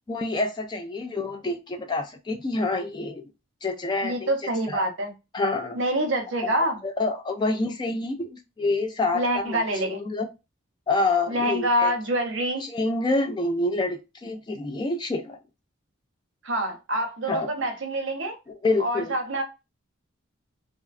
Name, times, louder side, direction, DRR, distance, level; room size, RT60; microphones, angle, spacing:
voice 1, 0.1-3.2 3.6-4.3 4.7-4.9 5.3-5.8 6.4-10.3 10.9-11.9 12.6-15.4 17.3-17.5 18.5-19.1, left 2 dB, 20° left, 0.3 m, -27 dB
voice 2, 4.0-5.1 5.7-6.8 9.1-10.0 11.3-12.7 16.4-18.4 18.8-19.4, right 1 dB, 70° right, 0.7 m, -26 dB
2.6 x 2.2 x 2.4 m
head